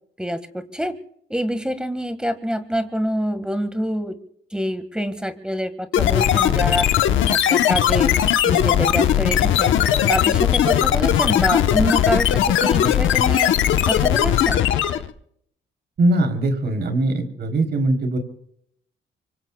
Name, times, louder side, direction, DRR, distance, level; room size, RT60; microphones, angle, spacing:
voice 1, 0.2-1.0 1.3-4.2 4.5-6.9 7.3-8.1 8.4-9.7 10.1-13.5 13.9-14.7, equal, 5° right, 10 dB, 1.7 m, -26 dB
sound 1, 5.9-15.1, left 10 dB, 75° left, 1.0 m, -18 dB
voice 2, 16.0-18.2, right 2 dB, 55° right, 5 dB, 3.5 m, -21 dB
25.0 x 24.0 x 2.3 m, 0.69 s
cardioid pair, 90°, 20 cm